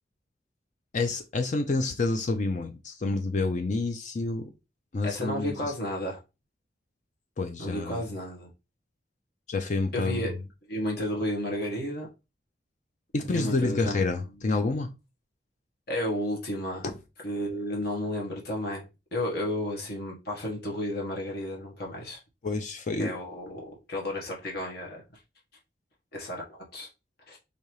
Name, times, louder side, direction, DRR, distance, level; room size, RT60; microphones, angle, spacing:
voice 1, 0.9-4.5 4.9-5.7 7.4-8.0 9.5-10.3 13.1-14.9 16.8-16.9 22.4-23.1, left 3 dB, 45° left, 0.5 m, -28 dB
voice 2, 5.0-6.2 7.6-8.5 9.9-10.3 10.7-12.1 13.3-14.0 15.9-16.8 17.2-18.8 19.1-22.2 23.0-25.0 26.1-26.9 27.3-27.4, left 1 dB, 60° left, 1.4 m, -32 dB
5.1 x 2.7 x 3.1 m
head